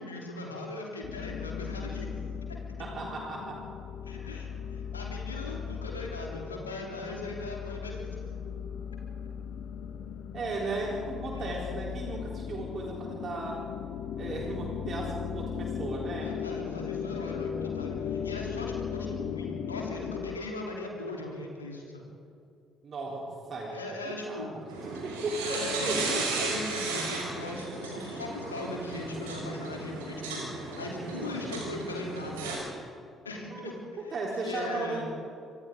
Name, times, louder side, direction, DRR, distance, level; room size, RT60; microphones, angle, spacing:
voice 1, 0.0-2.1 4.0-8.1 11.3-11.5 16.2-22.0 23.7-24.5 25.4-32.5 33.2-34.1 34.4-35.0, left 2 dB, 85° left, -1 dB, 3.4 m, -39 dB
sound 1, 1.0-20.4, left 7 dB, 60° left, 1.0 m, -37 dB
voice 2, 2.8-3.6 10.3-13.6 14.2-16.4 22.8-26.5 31.0-31.5 33.5-35.0, right 2 dB, 45° right, -2 dB, 3.8 m, -36 dB
sound 2, 24.7-32.6, right 3 dB, 75° right, 5.4 m, -35 dB
29.0 x 25.5 x 3.8 m, 2.4 s
figure-of-eight pair, 50°, 0 cm